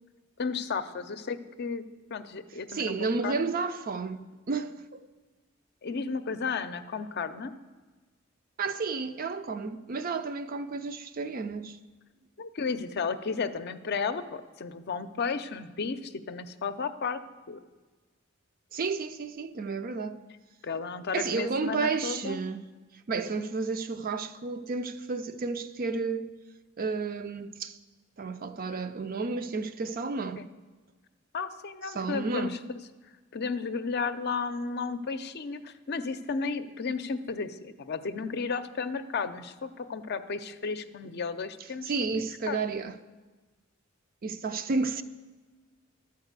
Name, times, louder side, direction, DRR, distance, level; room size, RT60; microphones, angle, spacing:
voice 1, 0.4-1.8 2.1-3.5 5.8-7.5 12.4-17.2 17.5-17.6 20.6-22.4 30.4-30.5 31.3-32.6 33.3-41.9 42.5-42.6, left 5 dB, 55° left, 0.5 m, -33 dB
voice 2, 2.7-5.1 8.6-11.8 18.7-20.2 21.1-22.6 23.1-26.3 26.8-27.8 28.2-30.4 31.9-32.5 41.8-42.9 44.2-45.0, right 4 dB, 45° right, 0.5 m, -32 dB
12.5 x 4.8 x 8.1 m
head